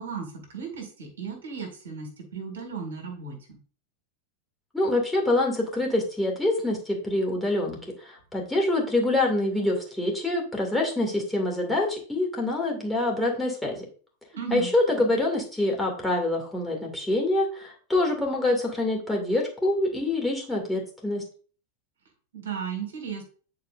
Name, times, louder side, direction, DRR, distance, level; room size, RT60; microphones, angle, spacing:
voice 1, 0.0-3.6 14.3-14.7 22.3-23.2, right 6 dB, 70° right, 4 dB, 1.9 m, -35 dB
voice 2, 4.7-13.8 14.5-21.2, left 2 dB, 5° left, -1 dB, 2.3 m, -26 dB
9.6 x 4.5 x 2.5 m, 0.40 s
figure-of-eight pair, 90°, 0 cm